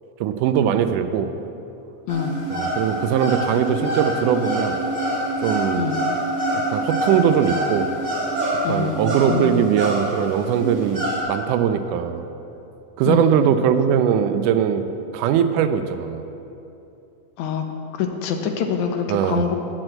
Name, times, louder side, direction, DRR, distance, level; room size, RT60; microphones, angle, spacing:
voice 1, 0.2-1.3 2.5-4.8 5.4-5.8 6.7-7.9 8.7-11.0 11.3-12.3 13.0-14.8 15.1-16.2 19.1-19.5, right 8 dB, 85° right, 9 dB, 2.1 m, -20 dB
sound 1, 2.1-11.2, right 1 dB, 25° right, 1.8 m, -26 dB
voice 2, 8.6-9.7 13.1-13.3 17.4-17.7 18.0-19.6, left 6 dB, 75° left, 4 dB, 2.0 m, -25 dB
8.8 x 6.1 x 7.7 m, 2.8 s
omnidirectional pair, 3.6 m